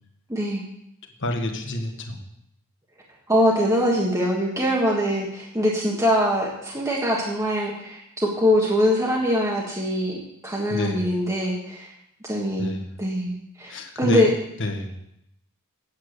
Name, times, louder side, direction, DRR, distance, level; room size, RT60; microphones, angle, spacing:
voice 1, 0.3-0.6 3.3-11.9 12.2-12.7 13.0-13.7 14.0-14.3, equal, 15° right, -3 dB, 1.5 m, -23 dB
voice 2, 1.2-2.2 10.7-11.1 12.6-12.9 13.7-14.3 14.6-14.9, left 1 dB, 55° left, 4 dB, 1.5 m, -28 dB
8.8 x 8.6 x 6.6 m, 0.79 s
head